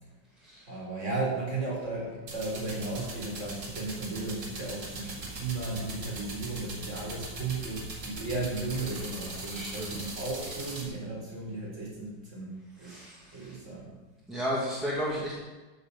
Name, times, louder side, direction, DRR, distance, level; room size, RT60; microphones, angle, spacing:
voice 1, 0.7-13.0 13.3-13.9, right 3 dB, 35° right, -4 dB, 4.6 m, -35 dB
sound 1, 2.3-10.8, right 2 dB, 60° right, 2.8 m, -40 dB
voice 2, 9.5-10.1 12.8-13.6 14.3-15.3, equal, ahead, -7 dB, 2.2 m, -34 dB
14.5 x 7.2 x 5.5 m, 1.2 s
omnidirectional pair, 2.2 m